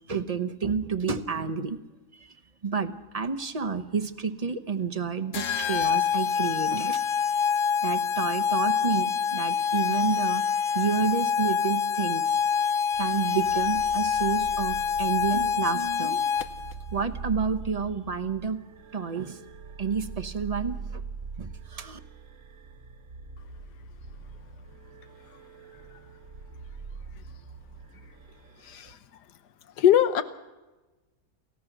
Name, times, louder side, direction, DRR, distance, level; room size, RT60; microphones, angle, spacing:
voice 1, 0.1-1.8 2.1-2.3 2.6-7.0 7.8-10.4 10.7-12.4 13.0-16.2 16.9-18.6 18.9-19.4 19.8-21.0 21.4-22.0, right 5 dB, 30° right, 8 dB, 0.9 m, -30 dB
sound 1, 5.3-16.7, left 7 dB, 55° left, 1.1 m, -26 dB
sound 2, 12.9-28.9, right 5 dB, 55° right, 1.6 m, -43 dB
voice 2, 28.6-29.0 29.8-30.2, left 10 dB, 90° left, 11 dB, 1.5 m, -21 dB
28.5 x 15.5 x 6.1 m, 1.1 s
omnidirectional pair, 1.7 m